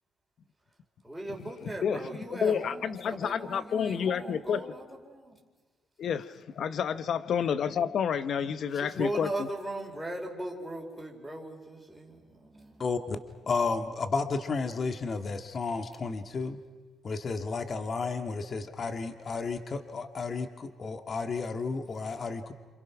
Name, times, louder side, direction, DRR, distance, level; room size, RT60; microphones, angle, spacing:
voice 1, 1.0-5.4 8.7-12.9 13.4-13.5, right 1 dB, 5° right, -1 dB, 4.6 m, -38 dB
voice 2, 2.3-4.6 6.0-9.3, left 7 dB, 65° left, 14 dB, 0.9 m, -29 dB
voice 3, 12.8-13.2 13.5-16.6 17.0-22.5, left 4 dB, 45° left, 7 dB, 1.8 m, -32 dB
28.0 x 27.0 x 6.1 m, 1.4 s
cardioid pair, 90°, 0 cm